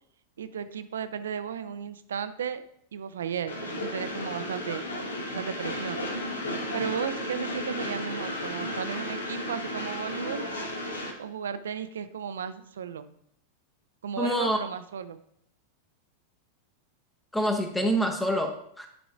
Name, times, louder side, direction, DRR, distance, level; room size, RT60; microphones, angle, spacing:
voice 1, 0.4-2.6 2.9-4.8 5.3-6.0 6.7-10.4 11.2-13.1 14.0-15.2, right 7 dB, 65° right, 12 dB, 0.5 m, -34 dB
Train, 3.5-11.1, left 1 dB, 70° left, 1.0 m, -34 dB
voice 2, 14.2-14.6 17.3-18.9, equal, 5° left, 4 dB, 0.8 m, -26 dB
11.0 x 4.9 x 2.5 m, 0.70 s
figure-of-eight pair, 90°, 0 cm